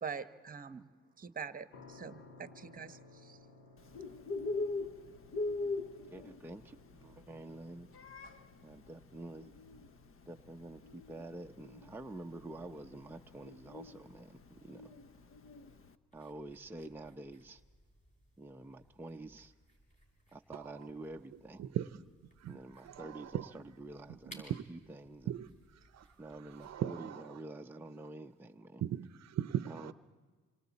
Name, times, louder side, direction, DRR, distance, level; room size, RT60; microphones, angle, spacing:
voice 1, 0.0-0.9 1.2-3.4, right 6 dB, 30° right, 10 dB, 1.1 m, -44 dB
sound 1, 1.7-16.6, left 3 dB, 85° left, 1.6 m, -62 dB
Bird, 3.8-15.9, left 3 dB, 45° left, 1.1 m, -42 dB
voice 2, 6.1-7.9 8.6-9.5 10.3-14.9 16.1-17.6 18.4-19.5 20.3-21.7 22.5-25.3 26.2-28.8 29.7-29.9, right 2 dB, 5° right, 4 dB, 0.7 m, -48 dB
sound 2, 16.1-26.7, equal, 25° left, 7.0 m, -62 dB
voice 3, 20.5-20.9 21.3-21.9 22.4-23.5 24.1-24.6 25.3-26.1 26.4-27.4 28.8-29.9, right 10 dB, 60° right, 13 dB, 0.7 m, -39 dB
26.5 x 26.0 x 4.2 m, 1.5 s
cardioid pair, 90°, 30 cm